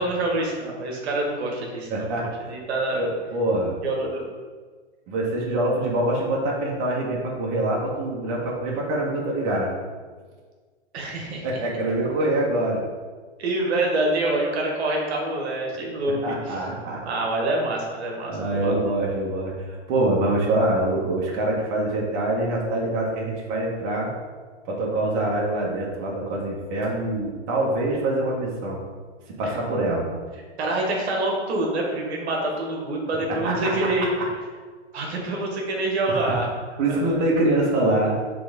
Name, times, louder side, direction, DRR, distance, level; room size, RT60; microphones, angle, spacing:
voice 1, 0.0-2.1 2.5-3.1 3.8-4.2 10.9-11.4 13.4-16.6 17.0-18.9 29.4-29.6 30.6-34.1 34.9-37.2, right 2 dB, 65° right, 0 dB, 1.7 m, -26 dB
voice 2, 1.9-2.3 2.9-3.8 5.1-9.7 11.4-12.8 16.2-17.0 18.2-24.1 24.6-28.8 29.4-30.1 33.3-34.3 36.1-36.3 36.8-38.2, right 1 dB, 40° right, -3 dB, 1.5 m, -25 dB
6.0 x 3.6 x 5.3 m, 1.5 s
hypercardioid pair, 130°, 35 cm